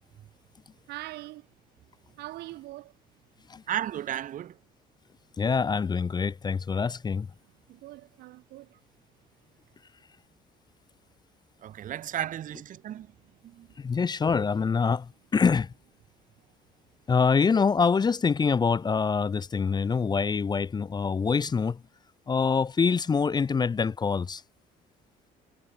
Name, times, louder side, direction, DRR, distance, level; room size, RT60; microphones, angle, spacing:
voice 1, 0.9-1.6 2.2-3.0 7.4-8.8 13.2-13.4 16.4-16.5, right 18 dB, 85° right, 1.7 m, -43 dB
voice 2, 3.7-4.6 11.6-13.1 13.4-13.7, right 11 dB, 50° right, 0.9 m, -34 dB
voice 3, 5.4-7.3 13.8-15.7 17.1-21.8 22.3-24.4, left 5 dB, 25° left, 0.6 m, -25 dB
cardioid pair, 110°, 17 cm